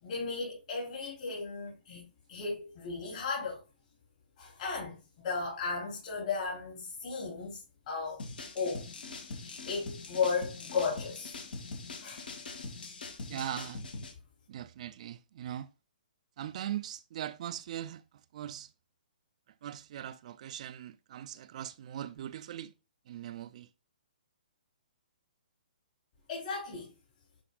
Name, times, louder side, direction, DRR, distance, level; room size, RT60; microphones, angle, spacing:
voice 1, 0.0-3.6 4.4-8.2 8.5-8.9 9.3-11.4 12.0-12.3 26.3-26.9, left 5 dB, 45° left, 3.4 m, -35 dB
sound 1, 8.2-14.1, left 3 dB, 70° left, 1.8 m, -43 dB
voice 2, 13.3-13.8 14.5-15.7 16.4-18.0 18.3-18.7 19.6-22.7 23.1-23.7, right 11 dB, 45° right, 0.4 m, -40 dB
9.9 x 4.3 x 2.3 m
hypercardioid pair, 150°, 5 cm